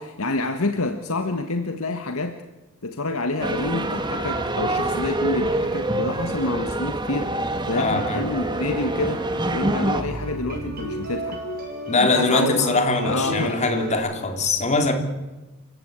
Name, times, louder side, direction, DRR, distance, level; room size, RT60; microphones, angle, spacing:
voice 1, 0.0-2.4 2.8-7.3 7.7-9.2 9.5-11.4 12.0-12.8 13.0-13.7, left 2 dB, 90° left, 7 dB, 1.6 m, -27 dB
sound 1, 3.4-10.0, right 2 dB, 20° right, 1.8 m, -26 dB
voice 2, 7.8-8.2 11.9-14.9, left 3 dB, 30° left, 5 dB, 3.4 m, -22 dB
sound 2, 7.9-13.9, right 1 dB, 45° right, 7.1 m, -33 dB
28.5 x 16.5 x 8.3 m, 1.2 s
head